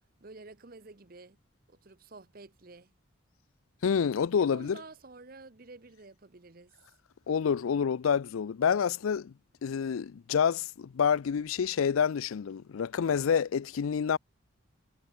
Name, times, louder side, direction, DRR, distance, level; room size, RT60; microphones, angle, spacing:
voice 1, 0.2-1.4 1.7-2.9 4.4-6.7, right 3 dB, 45° right, 1.0 m, -50 dB
voice 2, 3.8-4.8 7.3-9.3 9.6-14.2, left 7 dB, 85° left, 0.4 m, -28 dB
head